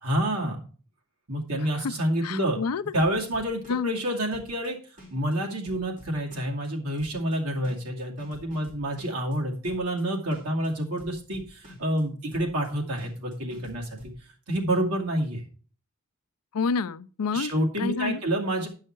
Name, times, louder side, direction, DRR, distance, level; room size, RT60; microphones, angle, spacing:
voice 1, 0.0-0.6 1.3-2.6 2.9-4.8 5.1-13.9 14.5-15.4 17.3-18.7, right 1 dB, 90° right, 2.3 m, -28 dB
voice 2, 2.2-2.9 3.7-3.9 16.5-17.5 17.8-18.2, left 4 dB, 85° left, 0.5 m, -28 dB
sound 1, 2.9-14.2, left 1 dB, 35° right, 3.4 m, -50 dB
10.0 x 5.6 x 4.5 m
head